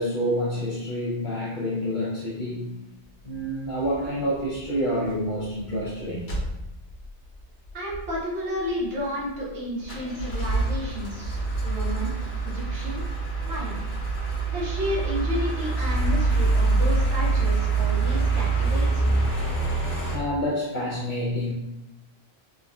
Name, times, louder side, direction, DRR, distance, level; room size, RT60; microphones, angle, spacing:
voice 1, 0.0-2.8 3.2-6.4 20.1-21.5, equal, 50° left, -9 dB, 0.7 m, -28 dB
sound 1, 3.8-4.1 4.5-4.7 5.0-5.1 5.4-5.9 6.3-7.0 7.4-7.5 7.7-8.2 8.6-9.5 9.8-20.2, right 3 dB, 85° left, 1.0 m, -25 dB
voice 2, 7.7-12.1 12.4-13.0 13.4-13.9 14.5-19.3, equal, 85° right, -5 dB, 1.2 m, -32 dB
3.5 x 2.1 x 2.3 m, 0.87 s
omnidirectional pair, 1.1 m